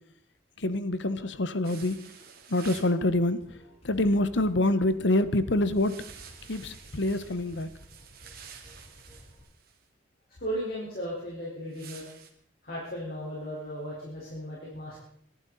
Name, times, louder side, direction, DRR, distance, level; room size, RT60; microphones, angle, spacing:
voice 1, 0.6-2.0 2.5-3.4 3.8-5.9 6.5-7.7, left 1 dB, 65° left, 13 dB, 1.0 m, -26 dB
sound 1, 1.6-3.0 5.7-9.8 11.7-12.3, right 7 dB, 50° right, 2.2 m, -49 dB
sound 2, 3.4-9.4, equal, 35° left, 5.9 m, -52 dB
voice 2, 10.4-12.1 12.6-15.0, equal, 50° left, -5 dB, 4.5 m, -36 dB
24.0 x 11.5 x 4.1 m, 0.70 s
head